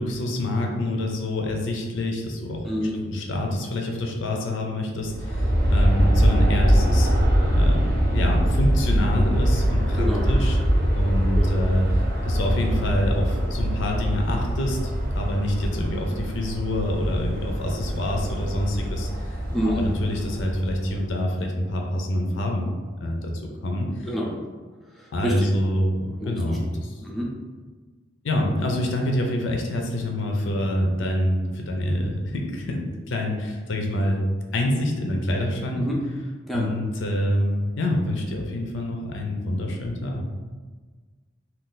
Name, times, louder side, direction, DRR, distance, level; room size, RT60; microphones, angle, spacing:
voice 1, 0.0-2.6 2.9-7.1 7.5-10.6 11.0-19.4 19.8-22.7 23.0-23.3 23.6-24.1 25.1-26.9 28.2-34.2 34.5-35.8 36.5-40.3, left 1 dB, 70° left, 1 dB, 0.5 m, -26 dB
Aircraft, 5.0-21.1, equal, 50° right, 0.7 m, -23 dB
voice 2, 19.5-19.8 24.0-24.3 25.2-25.5 26.2-26.6 27.0-27.3 35.8-36.0 36.5-36.7, equal, ahead, -4 dB, 0.4 m, -27 dB
2.6 x 2.3 x 3.7 m, 1.4 s
head